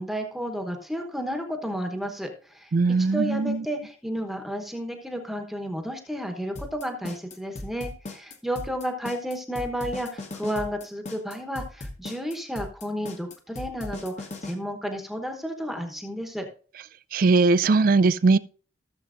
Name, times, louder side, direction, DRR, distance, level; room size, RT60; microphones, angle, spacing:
voice 1, 0.0-2.7 3.0-16.5, equal, ahead, 1.0 m, -32 dB
voice 2, 2.7-3.6 17.1-18.4, right 3 dB, 50° right, 0.4 m, -20 dB
sound 1, 6.6-14.5, left 2 dB, 40° left, 1.0 m, -38 dB
15.5 x 7.0 x 2.5 m
head